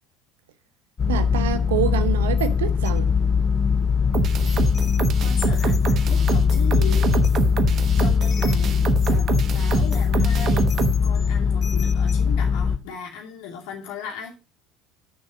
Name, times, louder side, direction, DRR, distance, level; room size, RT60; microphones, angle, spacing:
sound 1, 1.0-12.8, left 6 dB, 30° left, 0.8 m, -21 dB
voice 1, 1.1-3.1, right 9 dB, 70° right, 0.9 m, -26 dB
sound 2, 4.1-11.0, right 6 dB, 40° right, 1.0 m, -25 dB
voice 2, 5.2-7.1 8.0-8.8 9.1-10.7 11.0-14.3, left 6 dB, 55° left, 2.5 m, -37 dB
9.0 x 6.5 x 5.1 m
figure-of-eight pair, 65°, 0 cm